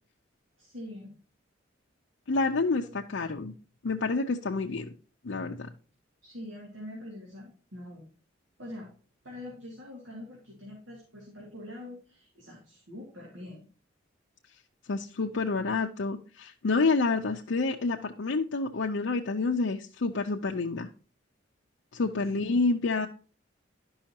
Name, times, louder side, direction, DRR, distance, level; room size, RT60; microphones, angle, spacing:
voice 1, 0.6-1.1 6.2-8.1 8.6-8.9 9.2-13.6 22.3-22.6, left 1 dB, 85° right, -3 dB, 2.5 m, -44 dB
voice 2, 2.3-3.5 3.8-4.9 5.2-5.7 14.9-20.9 21.9-23.1, left 3 dB, 75° left, 0 dB, 0.6 m, -28 dB
11.5 x 5.6 x 2.8 m, 0.39 s
head